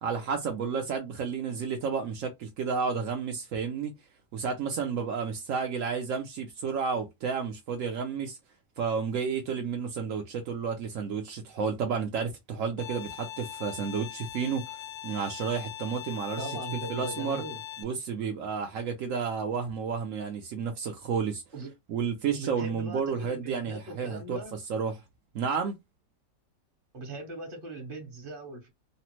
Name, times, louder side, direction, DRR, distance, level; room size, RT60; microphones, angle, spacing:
voice 1, 0.0-3.9 4.3-8.4 8.8-16.6 16.9-17.4 17.8-21.4 21.9-25.0 25.3-25.8, right 6 dB, 75° right, 0.7 m, -31 dB
Bowed string instrument, 12.8-17.8, left 11 dB, 80° left, 1.2 m, -40 dB
voice 2, 16.4-17.6 21.5-21.7 22.3-24.5 26.9-28.7, right 2 dB, 35° right, 1.1 m, -39 dB
3.3 x 2.0 x 2.9 m
omnidirectional pair, 1.9 m